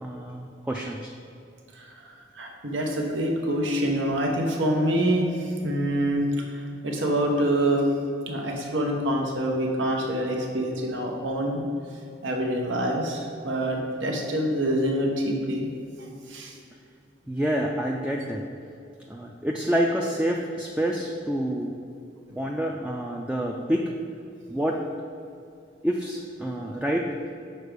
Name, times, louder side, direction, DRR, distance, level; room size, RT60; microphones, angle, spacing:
voice 1, 0.0-1.1 17.3-18.5 19.1-21.8 22.4-23.9 24.5-24.8 25.8-27.1, equal, 5° right, 0 dB, 0.3 m, -27 dB
voice 2, 2.4-5.3 5.6-7.8 8.3-11.6 12.2-15.7 16.3-16.5, right 1 dB, 85° right, 1 dB, 1.1 m, -26 dB
6.5 x 4.5 x 5.1 m, 2.5 s
head